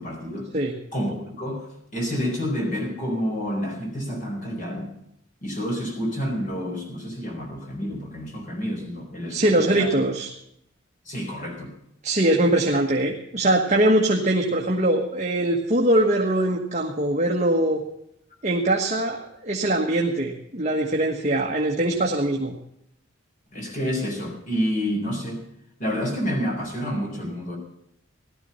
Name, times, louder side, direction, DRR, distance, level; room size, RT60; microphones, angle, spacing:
voice 1, 0.0-0.5 0.9-4.9 5.4-9.9 11.0-11.7 23.5-25.4 25.8-27.6, equal, 40° left, 1 dB, 4.7 m, -29 dB
voice 2, 9.3-10.3 12.0-17.8 18.4-22.5, right 1 dB, 35° right, 0 dB, 1.4 m, -22 dB
16.5 x 12.5 x 5.5 m, 0.76 s
head